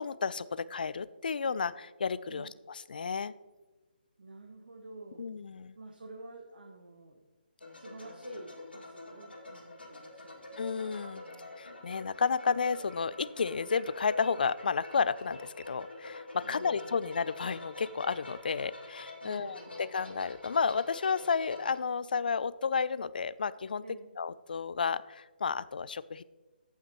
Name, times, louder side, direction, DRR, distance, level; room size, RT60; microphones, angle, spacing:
voice 1, 0.0-3.3 5.2-5.8 10.6-11.2 11.6-23.8 24.2-26.2, left 5 dB, 60° left, 17 dB, 0.4 m, -32 dB
voice 2, 4.2-5.4 5.8-7.2 7.7-10.5 11.2-11.5 16.4-17.2 19.2-19.9 23.8-24.1, right 2 dB, 65° right, 3 dB, 1.1 m, -50 dB
sound 1, 7.6-21.8, left 2 dB, 85° left, 2.4 m, -46 dB
15.0 x 5.7 x 3.0 m, 1.2 s
figure-of-eight pair, 145°, 5 cm